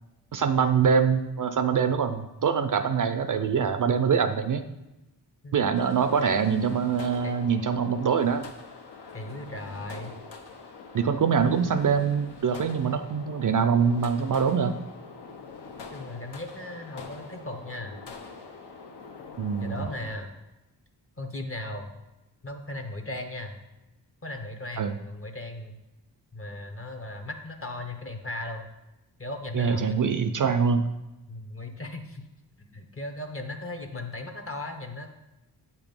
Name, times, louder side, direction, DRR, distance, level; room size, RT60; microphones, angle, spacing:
voice 1, 0.3-4.6 5.5-8.4 10.9-14.8 19.4-19.8 24.8-24.9 29.5-30.9, right 6 dB, 50° right, 8 dB, 0.4 m, -24 dB
sound 1, 5.7-20.2, left 4 dB, 65° left, 0.9 m, -44 dB
voice 2, 9.1-10.1 15.9-18.0 19.6-20.3 21.2-21.9 22.4-23.6 24.2-25.8 26.3-28.7 29.2-30.0 31.3-32.2 32.6-35.1, left 2 dB, 30° left, 5 dB, 0.9 m, -37 dB
7.9 x 3.0 x 5.2 m, 1.0 s
cardioid pair, 60°, 43 cm